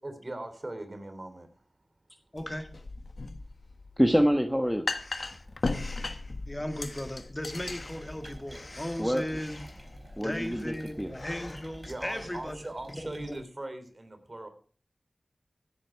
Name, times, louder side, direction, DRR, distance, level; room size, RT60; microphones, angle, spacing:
voice 1, 0.0-1.7 5.4-5.9 11.8-14.5, right 2 dB, 40° right, 8 dB, 3.4 m, -40 dB
voice 2, 2.3-2.7 6.5-9.6 10.2-12.6 13.0-13.3, left 1 dB, 20° left, 7 dB, 1.6 m, -36 dB
sound 1, 2.4-10.1, left 3 dB, 70° left, 1.4 m, -37 dB
voice 3, 4.0-4.8 9.0-9.4 10.2-11.1, equal, ahead, 6 dB, 1.3 m, -26 dB
Breathing, 5.0-12.6, left 2 dB, 50° left, 1.2 m, -48 dB
sound 2, 7.8-13.4, right 1 dB, 20° right, 5.0 m, -49 dB
15.0 x 9.7 x 4.6 m, 0.42 s
wide cardioid pair, 50°, 0 cm